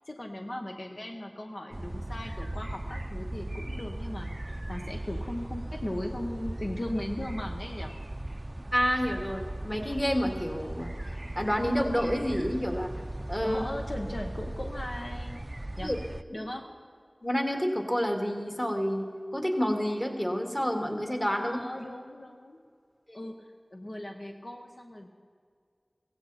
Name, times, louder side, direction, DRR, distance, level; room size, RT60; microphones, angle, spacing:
voice 1, 0.1-7.9 13.4-15.4 15.8-15.9 16.3-16.7 21.4-22.6 23.1-25.1, left 1 dB, 70° left, 2 dB, 1.1 m, -38 dB
sound 1, 1.7-16.2, right 1 dB, 40° right, 0.4 m, -38 dB
voice 2, 8.7-12.9 13.3-13.6 15.8-16.0 16.3-16.4 17.2-19.0 19.3-21.6 23.1-23.2, equal, 20° left, 3 dB, 2.2 m, -29 dB
16.5 x 16.0 x 4.2 m, 2.1 s
wide cardioid pair, 45°, 0 cm